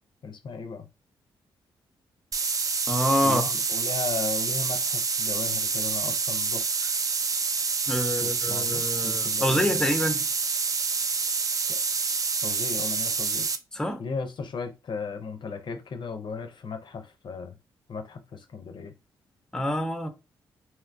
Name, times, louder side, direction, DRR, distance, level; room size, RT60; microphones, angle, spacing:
voice 1, 0.2-0.9 3.2-6.6 8.2-9.9 11.7-11.8 12.4-13.5 14.0-17.6 17.9-18.9, left 4 dB, 55° left, 0.5 m, -36 dB
sound 1, 2.3-13.6, right 5 dB, 35° right, 0.4 m, -27 dB
voice 2, 2.9-3.5 7.9-10.2 13.7-14.0 19.5-20.1, equal, 5° left, 0.6 m, -26 dB
2.9 x 2.1 x 2.5 m
supercardioid pair, 45°, 10 cm